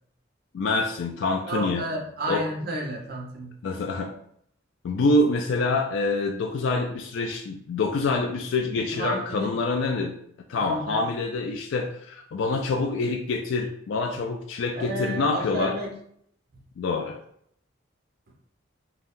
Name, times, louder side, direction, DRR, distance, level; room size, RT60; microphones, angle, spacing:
voice 1, 0.5-1.9 2.3-2.4 3.6-4.1 4.8-10.2 10.5-15.7 16.8-17.2, left 3 dB, 70° left, 2 dB, 0.3 m, -26 dB
voice 2, 1.5-3.6 8.9-9.5 10.5-11.0 14.8-15.9 16.5-16.6, right 1 dB, 50° right, 0 dB, 0.8 m, -32 dB
2.6 x 2.3 x 3.6 m, 0.68 s
head